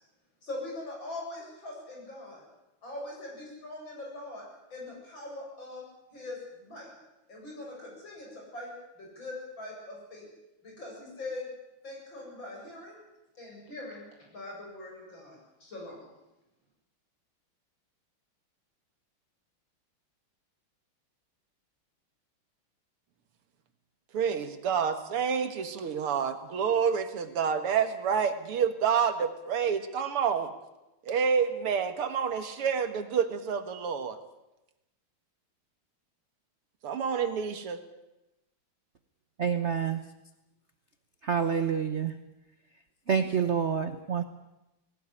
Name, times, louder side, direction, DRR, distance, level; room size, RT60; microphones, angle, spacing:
voice 1, 0.4-2.4 2.8-4.4 4.7-5.9 6.1-6.9 7.3-10.3 10.6-11.5 11.8-13.0 13.4-14.0 14.3-16.1, left 2 dB, 60° left, -2 dB, 8.7 m, -42 dB
voice 2, 24.1-30.5 31.1-34.2 36.8-37.8, right 7 dB, 90° right, 8 dB, 2.6 m, -28 dB
voice 3, 39.4-40.0 41.2-42.1 43.1-44.2, right 7 dB, 45° right, 9 dB, 0.9 m, -27 dB
19.0 x 18.0 x 9.8 m, 0.96 s
omnidirectional pair, 2.4 m